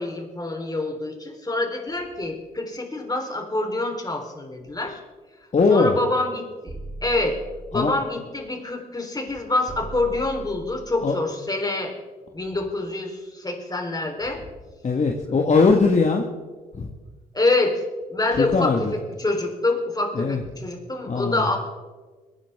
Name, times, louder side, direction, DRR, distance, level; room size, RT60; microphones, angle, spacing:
voice 1, 0.0-5.0 5.7-6.7 7.0-7.4 7.7-11.9 12.3-14.4 17.3-17.8 18.1-21.6, left 2 dB, 20° left, 2 dB, 3.8 m, -26 dB
voice 2, 5.5-6.0 7.7-7.9 11.0-11.1 14.8-16.2 16.7-16.9 18.4-18.8 20.1-20.4 21.0-21.5, left 4 dB, 45° left, 2 dB, 1.7 m, -20 dB
sound 1, 6.7-8.1 9.7-11.1, right 1 dB, 40° right, 2.9 m, -39 dB
22.0 x 10.0 x 3.6 m, 1.3 s
hypercardioid pair, 45°, 17 cm